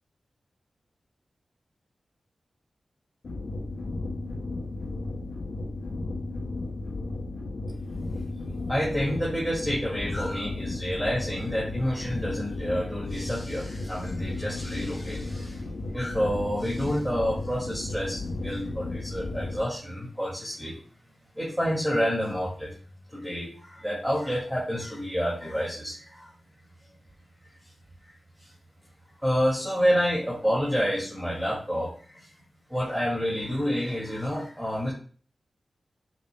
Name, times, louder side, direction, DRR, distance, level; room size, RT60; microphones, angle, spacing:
sound 1, 3.2-19.7, left 2 dB, 75° left, 1.0 m, -34 dB
voice 1, 8.7-15.6 15.9-20.8 21.3-22.7 23.1-26.3 28.0-28.1 28.4-28.5 29.2-32.3 32.7-34.9, equal, 5° right, -6 dB, 2.1 m, -29 dB
7.9 x 5.4 x 2.2 m, 0.43 s
wide cardioid pair, 95°, 0 cm